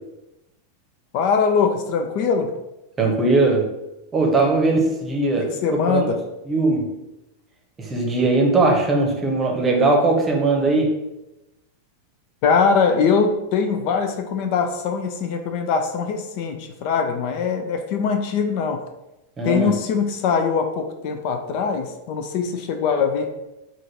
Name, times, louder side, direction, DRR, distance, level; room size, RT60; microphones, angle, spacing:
voice 1, 1.1-2.5 5.4-6.2 12.4-18.8 19.4-23.3, left 5 dB, 45° left, 6 dB, 0.4 m, -22 dB
voice 2, 3.0-3.7 4.1-5.6 5.9-6.1 6.5-6.9 7.8-11.0 19.4-19.7, right 2 dB, 20° right, 1 dB, 0.9 m, -19 dB
3.7 x 2.5 x 4.3 m, 0.94 s
figure-of-eight pair, 90°, 0 cm